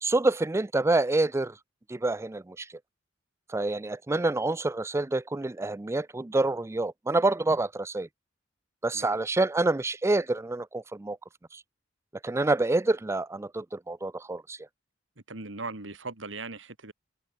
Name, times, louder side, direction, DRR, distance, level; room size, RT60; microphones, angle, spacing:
voice 1, 0.0-1.6 1.9-2.7 3.5-8.1 8.8-11.2 11.5-11.6 12.2-14.6, right 2 dB, 15° right, 0.4 m, -27 dB
voice 2, 15.3-16.9, right 3 dB, 75° right, 2.5 m, -39 dB
open air
head